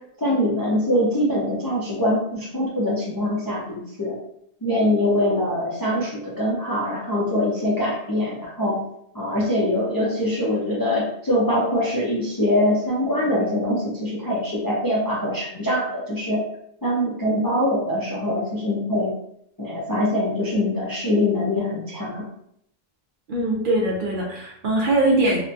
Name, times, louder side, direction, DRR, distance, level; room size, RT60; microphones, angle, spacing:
voice 1, 0.2-4.1 4.6-8.8 9.1-16.4 16.8-19.1 19.6-22.2, left 1 dB, 30° left, -6 dB, 0.4 m, -23 dB
voice 2, 23.3-25.4, right 1 dB, 60° right, -2 dB, 0.6 m, -21 dB
2.8 x 2.2 x 2.6 m, 0.72 s
omnidirectional pair, 1.1 m